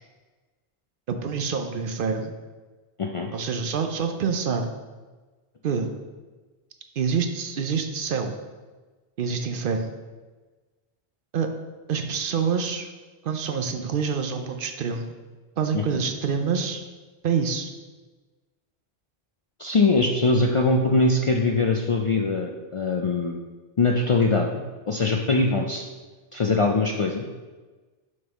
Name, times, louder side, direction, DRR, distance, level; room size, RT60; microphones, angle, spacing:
voice 1, 1.1-2.3 3.3-4.7 5.6-5.9 7.0-8.3 9.2-9.9 11.3-11.5 11.9-12.9 13.2-15.1 15.6-16.8 17.2-17.7, right 6 dB, 65° right, 6 dB, 0.7 m, -26 dB
voice 2, 3.0-3.3 15.7-16.0 19.6-23.4 23.8-25.8 26.3-27.2, left 3 dB, 50° left, 2 dB, 0.4 m, -22 dB
6.4 x 5.3 x 3.5 m, 1.3 s
omnidirectional pair, 1.0 m